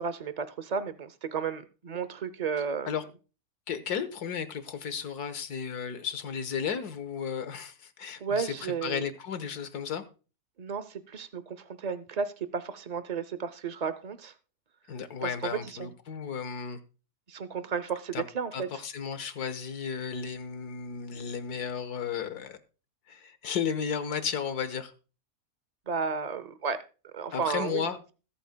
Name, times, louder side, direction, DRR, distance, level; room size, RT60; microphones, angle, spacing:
voice 1, 0.0-2.9 8.2-9.0 10.6-14.3 15.2-15.9 17.3-18.7 25.9-26.8 27.0-27.8, right 6 dB, 60° right, 0.4 m, -33 dB
voice 2, 3.7-10.0 14.9-16.8 18.1-18.2 18.5-22.6 23.1-24.9 27.3-28.0, left 7 dB, 90° left, 1.7 m, -34 dB
21.0 x 8.6 x 2.2 m
omnidirectional pair, 1.6 m